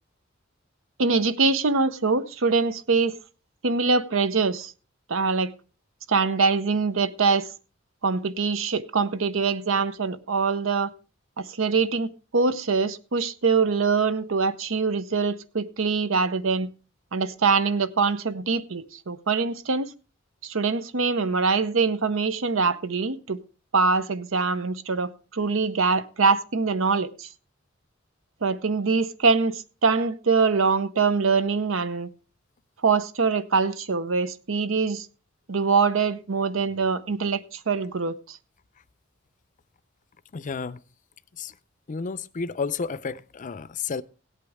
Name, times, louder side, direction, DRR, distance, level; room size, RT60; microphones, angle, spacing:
voice 1, 1.0-3.1 3.6-4.7 5.1-5.5 6.1-7.5 8.0-10.9 11.4-16.7 17.1-19.9 20.4-23.4 23.7-27.3 28.4-32.1 32.8-35.1 35.5-38.4, right 4 dB, 75° right, 0.8 m, -24 dB
voice 2, 40.3-40.8 41.3-41.5 41.9-44.0, left 5 dB, 40° left, 0.5 m, -31 dB
17.0 x 8.3 x 3.5 m
head